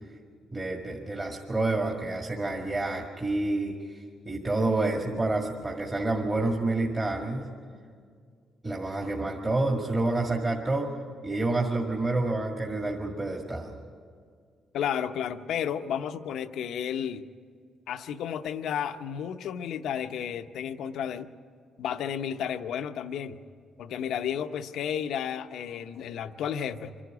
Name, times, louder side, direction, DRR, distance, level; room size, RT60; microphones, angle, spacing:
voice 1, 0.5-7.5 8.6-11.0 11.2-13.8, right 2 dB, 25° right, 0 dB, 1.9 m, -28 dB
voice 2, 14.7-17.2 17.9-21.3 21.8-23.4 23.8-26.9, left 8 dB, 75° left, 9 dB, 0.7 m, -32 dB
25.0 x 11.5 x 9.4 m, 2.1 s
cardioid pair, 90°, 0 cm